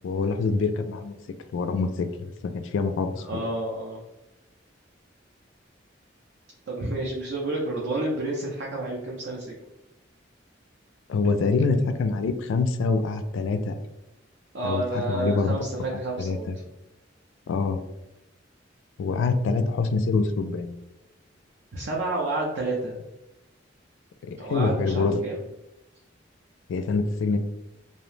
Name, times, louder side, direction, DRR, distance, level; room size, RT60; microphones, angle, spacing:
voice 1, 0.0-1.1 1.5-3.4 11.1-13.8 14.6-15.6 15.9-16.6 17.5-17.8 19.0-20.7 24.2-25.2 26.7-27.4, left 4 dB, 80° left, 9 dB, 0.3 m, -25 dB
voice 2, 3.2-4.0 6.7-9.6 14.5-16.5 21.7-22.9 24.4-25.4, right 2 dB, 60° right, -3 dB, 0.5 m, -30 dB
2.7 x 2.0 x 3.1 m, 0.97 s
head